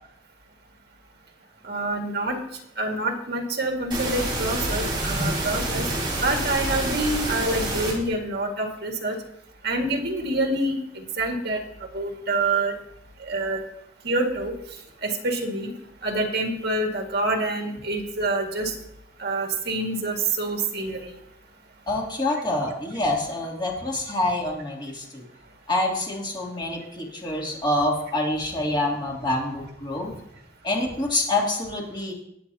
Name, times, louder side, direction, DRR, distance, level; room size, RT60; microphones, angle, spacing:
voice 1, 1.7-2.4 2.8-5.8 6.2-9.2 9.6-12.7 13.2-13.6 14.0-14.6 15.0-15.7 16.0-18.7 19.2-21.0, right 2 dB, 60° right, 2 dB, 2.0 m, -26 dB
sound 1, 3.9-7.9, right 2 dB, 25° right, 4.4 m, -28 dB
voice 2, 4.9-5.3 5.9-6.0 21.9-25.2 25.7-30.1 30.6-32.1, left 1 dB, 25° left, -3 dB, 2.8 m, -26 dB
20.0 x 8.0 x 2.8 m, 0.80 s
head